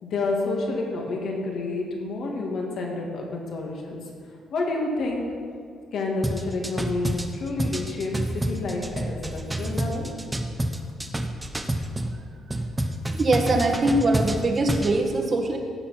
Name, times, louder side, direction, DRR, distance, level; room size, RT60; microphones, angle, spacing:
voice 1, 0.0-4.0 4.5-5.3 5.9-10.1, left 3 dB, 70° left, 0 dB, 2.5 m, -29 dB
sound 1, 6.2-12.1 12.5-15.0, right 1 dB, 15° right, 1.1 m, -28 dB
voice 2, 13.1-15.6, right 2 dB, 40° right, 2 dB, 1.8 m, -22 dB
16.5 x 6.4 x 6.0 m, 2.3 s
cardioid pair, 90°, 0 cm